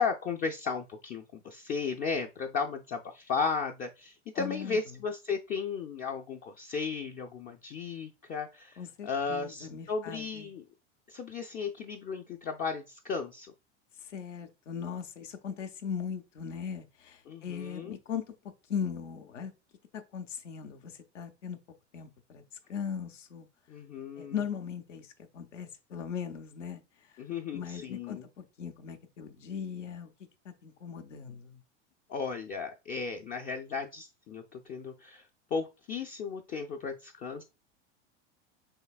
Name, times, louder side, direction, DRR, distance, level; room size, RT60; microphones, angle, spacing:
voice 1, 0.0-10.6 11.1-13.5 17.3-18.0 23.7-24.3 27.2-28.2 32.1-37.4, left 5 dB, 25° left, 0.3 m, -35 dB
voice 2, 4.3-5.0 8.8-10.5 14.0-18.3 18.7-19.5 19.9-21.6 21.9-22.4 22.7-23.5 24.2-26.8 27.1-27.2 27.5-30.1 30.4-31.6, left 7 dB, 85° left, 0.8 m, -39 dB
5.6 x 3.3 x 2.3 m
hypercardioid pair, 95°, 36 cm